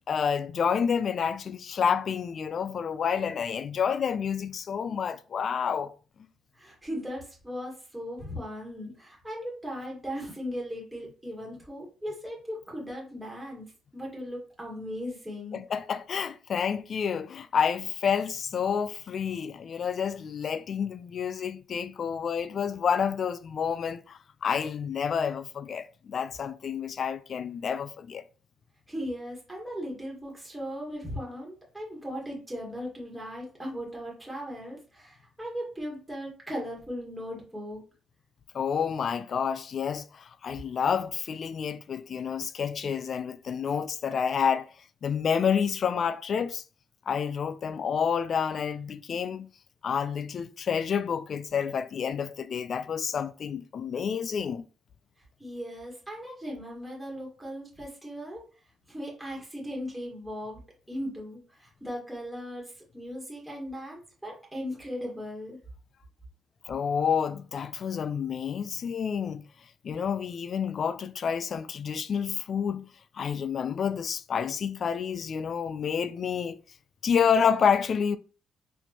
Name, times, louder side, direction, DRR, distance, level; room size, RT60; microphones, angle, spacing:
voice 1, 0.1-5.9 15.5-28.2 38.5-44.7 45.0-46.6 47.1-49.5 49.8-54.6 66.7-69.4 69.8-72.9 73.1-76.6 77.0-78.2, left 7 dB, 55° left, 0.3 m, -29 dB
voice 2, 6.5-13.7 13.9-15.6 28.9-37.8 55.4-58.4 58.9-60.6 60.9-65.6, equal, 5° right, 1.5 m, -38 dB
4.4 x 2.6 x 2.8 m
cardioid pair, 90°, 0 cm